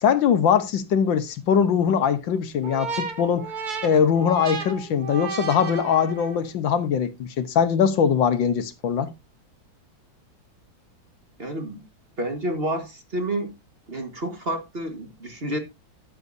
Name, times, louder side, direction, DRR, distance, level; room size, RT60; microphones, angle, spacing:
voice 1, 0.0-3.5 3.8-9.1, left 7 dB, 70° left, 1.6 m, -21 dB
sound 1, 2.6-6.5, right 5 dB, 50° right, 2.1 m, -33 dB
voice 2, 11.4-11.8 12.2-13.5 13.9-15.6, right 1 dB, 30° right, 1.6 m, -29 dB
13.0 x 9.5 x 2.7 m
omnidirectional pair, 2.2 m